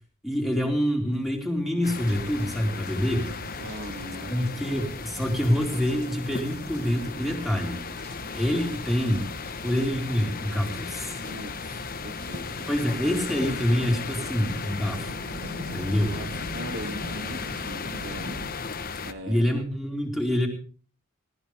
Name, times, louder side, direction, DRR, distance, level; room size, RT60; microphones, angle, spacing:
voice 1, 0.2-3.3 4.3-7.8 8.3-9.3 9.6-11.1 12.7-15.1 15.7-16.2 19.3-20.5, equal, ahead, 1 dB, 4.3 m, -26 dB
sound 1, 1.8-19.1, left 4 dB, 40° left, 1.1 m, -36 dB
sound 2, 2.1-18.5, equal, 75° right, 6.4 m, -43 dB
voice 2, 3.6-4.3 4.6-4.8 11.3-12.7 15.9-18.4 19.0-19.5, right 1 dB, 55° right, 5 dB, 2.4 m, -40 dB
20.0 x 19.0 x 3.5 m, 0.41 s
head